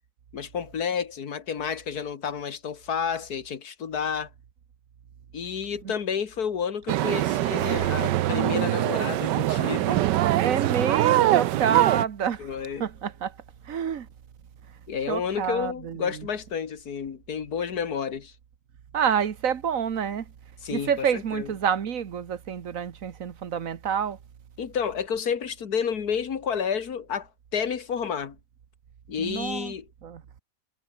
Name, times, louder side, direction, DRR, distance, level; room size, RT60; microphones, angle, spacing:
voice 1, 0.3-4.3 5.3-10.3 12.4-12.9 14.9-18.3 20.6-21.5 24.6-28.4 29.1-29.9, left 7 dB, 65° left, 2.2 m, -30 dB
sound 1, 6.9-12.1, right 14 dB, 90° right, 1.4 m, -23 dB
voice 2, 10.4-12.5 12.8-13.3 13.6-14.1 15.1-16.3 18.9-20.3 20.7-24.2 29.2-29.7 30.0-30.2, right 8 dB, 55° right, 1.6 m, -28 dB
omnidirectional pair, 1.8 m